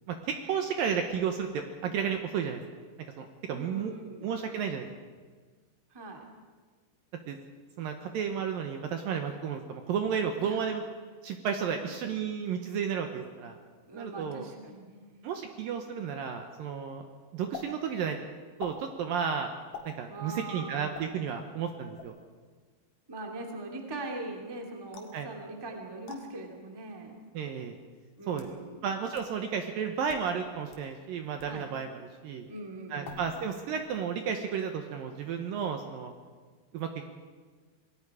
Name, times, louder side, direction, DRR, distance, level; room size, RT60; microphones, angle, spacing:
voice 1, 0.1-2.6 3.2-3.9 4.2-4.9 7.3-7.4 7.8-10.8 11.2-13.6 13.9-14.5 15.2-17.1 17.3-18.2 18.6-19.5 19.9-22.2 25.1-25.3 27.3-27.8 28.3-28.5 28.8-32.5 32.9-36.1 36.7-37.1, right 7 dB, 70° right, 5 dB, 2.4 m, -32 dB
voice 2, 3.5-4.3 5.9-6.3 10.4-10.6 11.8-11.9 13.8-15.2 20.1-21.0 23.1-27.2 28.2-28.9 31.4-31.6 32.5-33.3, right 2 dB, 10° right, 2 dB, 1.2 m, -41 dB
sound 1, 17.5-17.7 18.6-18.8 19.7-19.9 20.9-21.1 22.0-22.2 24.9-25.2 26.1-26.2 27.2-27.3 28.1-28.6 29.2-29.3 30.0-30.3 30.7-30.8 31.4-31.6 33.0-33.5 33.7-34.2, left 6 dB, 60° left, 3.7 m, -44 dB
27.0 x 20.0 x 4.9 m, 1.5 s
omnidirectional pair, 5.0 m